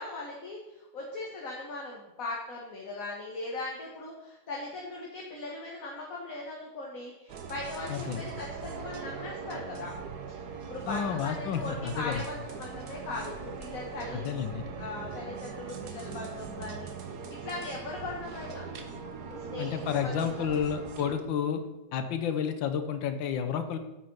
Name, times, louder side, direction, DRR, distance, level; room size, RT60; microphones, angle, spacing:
voice 1, 0.0-9.9 10.3-10.4 10.7-14.3 14.8-18.6 19.3-20.4, left 2 dB, 50° left, -2 dB, 2.0 m, -39 dB
sound 1, 7.3-21.2, right 5 dB, 60° right, 1.5 m, -41 dB
voice 2, 7.9-8.2 10.9-12.2 14.1-14.6 19.6-21.6 21.9-23.8, left 8 dB, 85° left, 8 dB, 1.8 m, -31 dB
9.3 x 8.6 x 5.5 m, 1.0 s
omnidirectional pair, 2.0 m